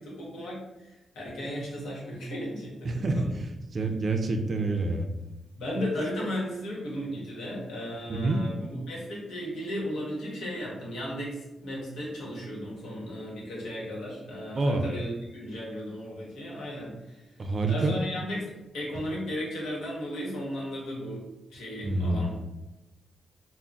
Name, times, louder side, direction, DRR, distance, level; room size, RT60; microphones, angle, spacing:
voice 1, 0.0-3.3 5.6-17.2 17.7-21.2 21.5-22.4, equal, 85° left, -4 dB, 0.9 m, -35 dB
voice 2, 2.8-5.1 8.1-8.4 14.5-14.8 17.4-18.0 21.8-22.3, right 2 dB, 50° right, 4 dB, 0.4 m, -27 dB
2.2 x 2.1 x 3.8 m, 0.98 s
supercardioid pair, 50°, 0 cm